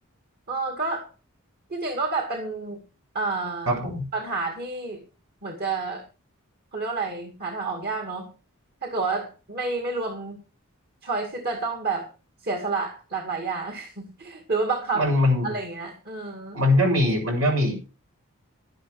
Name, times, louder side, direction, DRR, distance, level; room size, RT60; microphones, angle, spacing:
voice 1, 0.5-1.1 1.7-2.8 3.1-3.8 4.1-5.0 5.4-6.0 6.7-8.3 8.8-10.4 11.0-12.1 12.4-15.1 15.4-16.6, right 3 dB, 45° right, 3 dB, 2.2 m, -29 dB
voice 2, 3.7-4.1 14.9-15.5 16.5-17.7, left 1 dB, 75° right, 0 dB, 6.9 m, -21 dB
12.0 x 10.5 x 4.8 m, 0.32 s
head